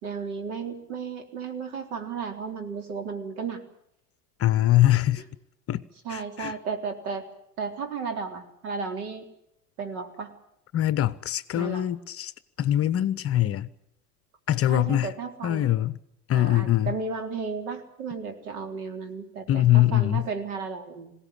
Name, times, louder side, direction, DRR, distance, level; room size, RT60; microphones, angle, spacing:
voice 1, 0.0-3.6 5.2-5.3 6.0-7.2 7.6-9.3 9.8-10.3 11.5-11.9 14.7-15.7 16.3-21.1, right 5 dB, 65° right, 3.8 m, -34 dB
voice 2, 4.4-5.2 5.7-5.8 6.1-6.5 10.7-12.3 12.6-13.7 14.5-15.1 15.4-15.9 16.3-16.9 19.5-20.3, left 13 dB, 30° left, 0.8 m, -23 dB
21.0 x 17.5 x 10.0 m
hypercardioid pair, 85°, 46 cm